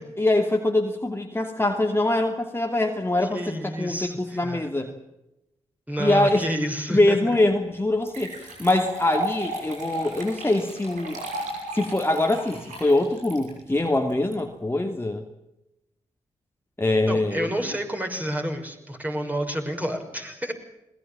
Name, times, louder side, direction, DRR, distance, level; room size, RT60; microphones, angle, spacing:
voice 1, 0.2-4.9 6.0-6.5 6.9-11.2 11.7-15.2 16.8-17.5, left 2 dB, 20° left, 3 dB, 2.7 m, -23 dB
voice 2, 3.2-4.7 5.9-7.2 17.1-20.5, equal, 10° right, 3 dB, 6.4 m, -29 dB
sound 1, 7.4-7.5 8.0-14.3, right 1 dB, 85° right, 6.3 m, -35 dB
21.5 x 19.0 x 7.3 m, 0.87 s
supercardioid pair, 40°, 12 cm